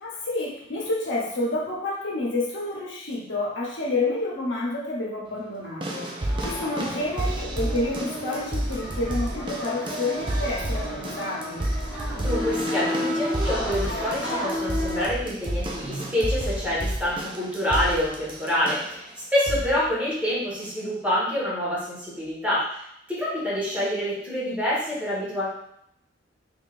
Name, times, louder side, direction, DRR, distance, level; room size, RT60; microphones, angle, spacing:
voice 1, 0.0-11.6, left 2 dB, 80° left, -3 dB, 0.9 m, -29 dB
sound 1, 5.8-19.0 19.5-19.8 20.6-20.7, right 1 dB, 25° right, 0.5 m, -31 dB
sound 2, 6.2-15.1, left 1 dB, 55° left, 1.2 m, -32 dB
voice 2, 12.1-22.8 23.1-25.5, left 1 dB, 10° right, -8 dB, 1.4 m, -27 dB
3.5 x 3.5 x 2.5 m, 0.74 s
head